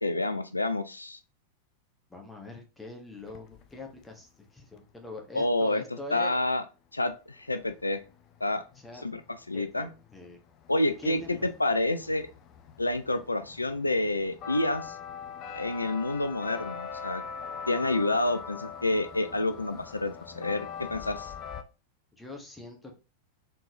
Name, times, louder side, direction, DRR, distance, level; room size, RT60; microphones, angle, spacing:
voice 1, 0.0-1.2 5.3-5.8 6.1-6.6 6.9-8.0 8.4-8.6 9.0-9.2 9.5-9.9 10.7-12.3 12.8-15.0 15.5-17.2 17.7-20.6 20.9-21.3, left 2 dB, 80° left, 9 dB, 0.4 m, -28 dB
voice 2, 2.1-6.4 8.7-9.0 9.5-10.4 11.0-11.5 22.2-23.0, left 3 dB, 10° left, 2 dB, 1.5 m, -44 dB
sound 1, 3.2-4.1 7.1-7.2 7.4-21.6, left 6 dB, 35° left, 0.6 m, -43 dB
4.4 x 3.9 x 3.0 m, 0.31 s
figure-of-eight pair, 90°, 0 cm